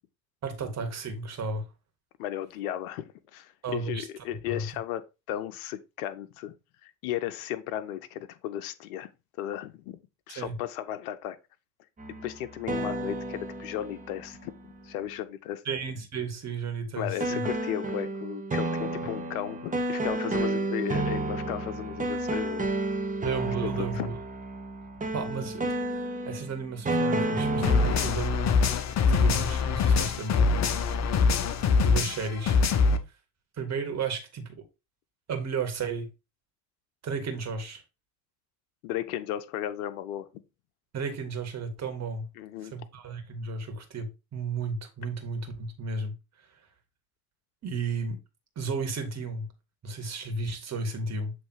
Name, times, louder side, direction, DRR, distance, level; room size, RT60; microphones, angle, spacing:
voice 1, 0.4-1.6 3.6-4.1 4.5-4.7 10.3-10.5 15.7-17.4 23.2-24.1 25.1-25.6 26.3-28.6 29.1-30.5 31.7-32.6 33.6-34.6 35.3-36.1 37.0-37.8 40.9-42.2 42.7-46.1 47.6-48.2 48.6-49.5 49.8-51.3, right 4 dB, 35° right, 2.1 m, -33 dB
voice 2, 2.2-6.5 6.8-9.1 9.4-10.0 10.3-11.4 12.1-15.6 17.0-22.7 23.6-24.1 38.8-40.3 42.4-42.7, left 12 dB, 60° left, 0.8 m, -35 dB
sound 1, 12.0-14.9 17.2-28.3, right 2 dB, 15° right, 1.3 m, -31 dB
sound 2, 27.6-33.0, left 5 dB, 35° left, 0.9 m, -23 dB
7.2 x 3.4 x 4.6 m
hypercardioid pair, 75°, 47 cm